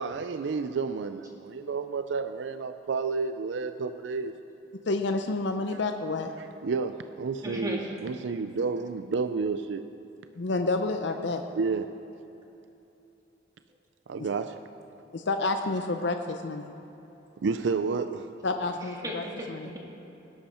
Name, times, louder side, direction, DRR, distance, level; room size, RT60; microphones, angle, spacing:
voice 1, 0.0-4.3 6.4-9.9 11.5-11.9 14.1-14.6 17.4-18.3, right 4 dB, 70° right, 10 dB, 0.4 m, -31 dB
voice 2, 4.9-6.3 10.4-11.4 15.1-16.7 18.4-19.2 19.6-19.7, left 3 dB, 70° left, 6 dB, 0.6 m, -29 dB
voice 3, 7.4-7.9 18.7-19.8, equal, 20° right, -2 dB, 2.0 m, -36 dB
18.0 x 11.0 x 4.3 m, 2.9 s
head